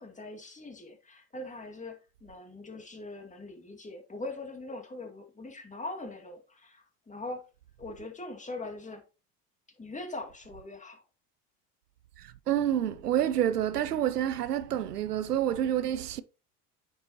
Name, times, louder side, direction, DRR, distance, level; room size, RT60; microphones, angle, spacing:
voice 1, 0.0-7.4 7.8-9.0 9.8-11.0, left 2 dB, 15° left, 2.3 m, -41 dB
voice 2, 12.2-16.2, right 11 dB, 85° right, 0.7 m, -28 dB
9.3 x 6.8 x 3.0 m
figure-of-eight pair, 70°, 45 cm